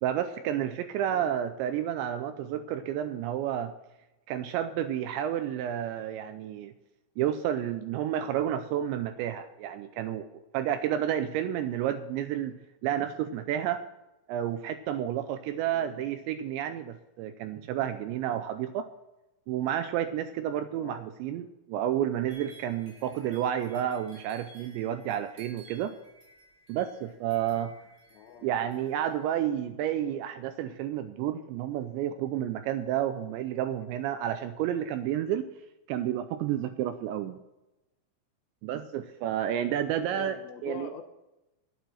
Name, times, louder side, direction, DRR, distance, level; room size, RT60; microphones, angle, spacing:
voice 1, 0.0-3.7 4.3-6.7 7.2-10.3 10.5-12.6 12.8-13.8 14.3-18.9 19.5-26.0 26.7-27.7 28.4-35.5 35.9-37.4 38.6-40.4 40.6-40.9, right 10 dB, 85° right, 9 dB, 2.6 m, -30 dB
voice 2, 15.7-16.0 20.8-21.0 28.1-28.5 40.1-41.0, left 8 dB, 75° left, 6 dB, 2.8 m, -44 dB
sound 1, 22.3-29.3, right 3 dB, 40° right, 6.7 m, -56 dB
12.0 x 8.9 x 6.4 m, 0.96 s
omnidirectional pair, 5.7 m